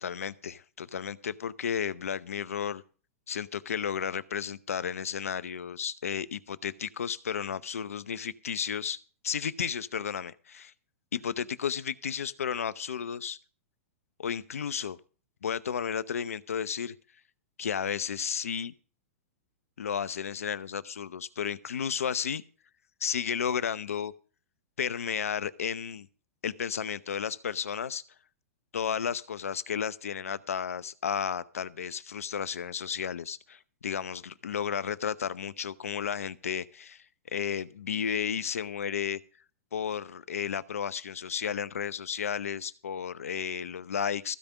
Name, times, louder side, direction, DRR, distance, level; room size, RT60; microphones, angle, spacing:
voice 1, 0.0-2.8 3.3-9.0 9.2-10.7 11.1-13.4 14.2-15.0 15.4-16.9 17.6-18.7 19.8-22.4 23.0-24.1 24.8-26.1 26.4-28.0 28.7-39.2 39.7-44.3, left 7 dB, 80° left, 17 dB, 0.8 m, -33 dB
15.5 x 5.2 x 9.2 m, 0.39 s
hypercardioid pair, 115°, 8 cm